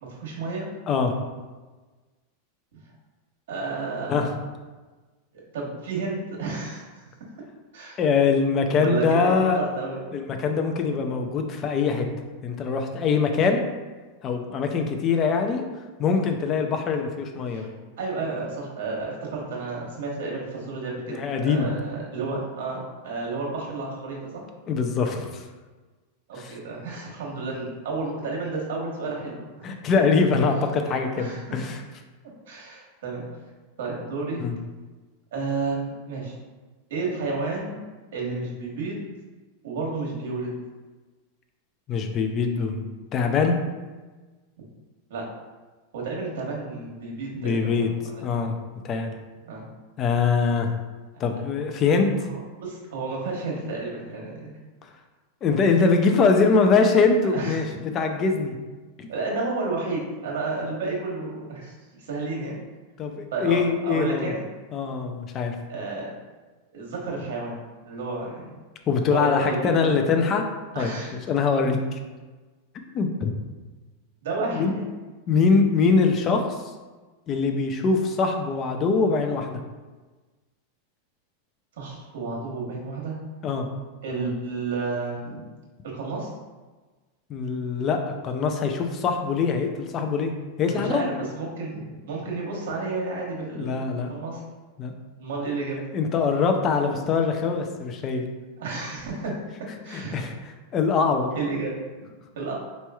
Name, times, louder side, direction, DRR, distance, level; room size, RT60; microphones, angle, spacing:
voice 1, 0.0-0.7 3.5-4.3 5.5-6.9 7.7-8.0 8.8-10.0 16.5-16.7 17.5-17.7 18.0-24.4 26.3-29.6 31.1-31.6 32.5-33.3 33.8-34.5 35.3-36.4 36.9-37.8 38.1-39.1 39.6-40.5 45.1-45.2 45.9-47.7 48.2-48.3 49.4-49.6 52.2-54.5 57.3-57.8 59.1-62.6 63.3-64.4 65.7-66.1 66.7-67.6 67.8-68.6 69.0-70.0 70.7-71.1 74.2-74.9 81.8-83.2 84.0-85.5 85.9-86.3 90.6-94.4 95.2-95.8 98.6-99.3 99.8-100.2 101.3-101.8 102.3-102.6, right 3 dB, 75° right, -2 dB, 1.2 m, -31 dB
voice 2, 8.0-9.6 10.1-12.1 12.4-13.6 14.2-15.7 16.0-17.7 21.1-21.7 24.7-25.4 26.4-26.5 29.6-31.8 34.4-34.5 41.9-43.6 47.3-47.9 48.2-48.6 48.8-49.1 50.0-50.7 51.2-52.1 55.4-57.6 57.9-58.5 59.0-59.1 63.0-64.3 64.7-65.5 68.9-70.4 70.7-70.9 71.3-72.0 72.9-73.3 74.5-74.7 75.3-76.4 77.3-79.6 83.4-83.7 87.3-90.3 90.6-91.2 93.6-94.1 94.8-94.9 95.9-98.3 99.9-100.3 100.7-101.3, left 5 dB, 30° left, 4 dB, 0.4 m, -23 dB
4.2 x 3.0 x 2.3 m, 1.3 s
supercardioid pair, 150°, 0 cm